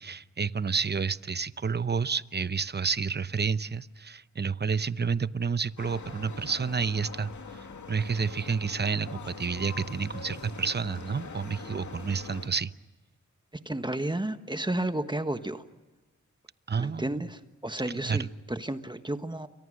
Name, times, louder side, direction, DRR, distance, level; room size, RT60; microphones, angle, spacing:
voice 1, 0.0-7.3 7.9-12.7 16.7-17.2 18.1-18.3, right 5 dB, 35° right, 15 dB, 0.8 m, -30 dB
sound 1, 5.8-12.5, left 5 dB, 70° left, 2.3 m, -43 dB
voice 2, 13.6-15.6 16.8-19.5, right 1 dB, 15° right, 9 dB, 1.4 m, -32 dB
29.5 x 24.0 x 6.5 m, 1.2 s
cardioid pair, 70°, 30 cm